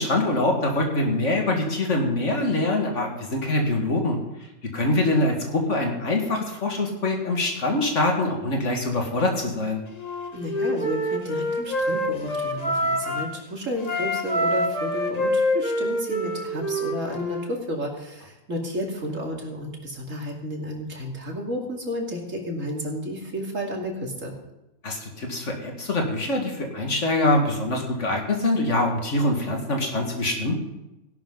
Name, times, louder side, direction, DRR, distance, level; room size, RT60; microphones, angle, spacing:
voice 1, 0.0-4.2 4.7-9.8 24.8-30.6, left 2 dB, 65° left, 1 dB, 2.4 m, -24 dB
Wind instrument woodwind instrument, 10.0-13.3 13.8-17.5, equal, 30° left, 1.5 m, -26 dB
voice 2, 10.3-24.3, equal, 75° right, 0 dB, 2.9 m, -32 dB
16.5 x 11.5 x 3.9 m, 0.96 s
omnidirectional pair, 1.3 m